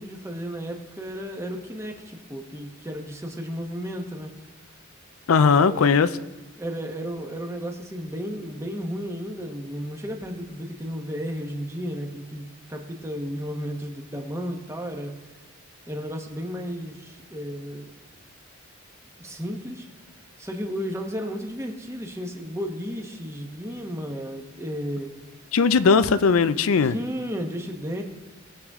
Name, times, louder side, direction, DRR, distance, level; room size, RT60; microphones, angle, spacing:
voice 1, 0.0-4.3 5.3-6.0 6.6-15.1 15.9-17.9 19.2-19.9 20.4-25.1 26.8-28.0, equal, 15° right, 2 dB, 1.1 m, -33 dB
voice 2, 5.3-6.1 25.5-27.0, left 5 dB, 85° left, 13 dB, 0.5 m, -18 dB
19.5 x 6.9 x 3.6 m, 1.2 s
head